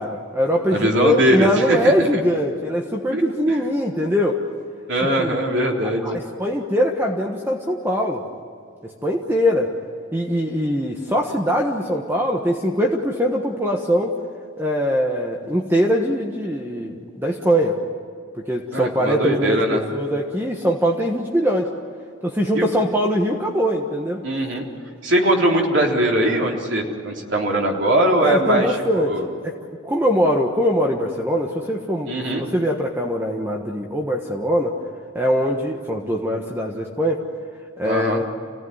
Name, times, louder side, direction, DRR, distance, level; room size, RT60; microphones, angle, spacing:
voice 1, 0.0-4.4 5.0-5.4 6.0-8.2 8.8-9.7 10.1-14.1 14.6-17.8 18.4-21.7 22.2-24.2 28.2-29.6 29.8-34.8 35.1-37.2 37.8-38.2, equal, 10° right, 1 dB, 1.4 m, -22 dB
voice 2, 0.7-2.1 3.1-3.2 4.9-6.0 18.7-19.8 22.5-22.7 24.2-24.6 25.0-28.8 29.1-29.2 32.1-32.4 37.8-38.2, right 1 dB, 60° right, 0 dB, 3.7 m, -20 dB
28.5 x 17.5 x 9.6 m, 2.4 s
head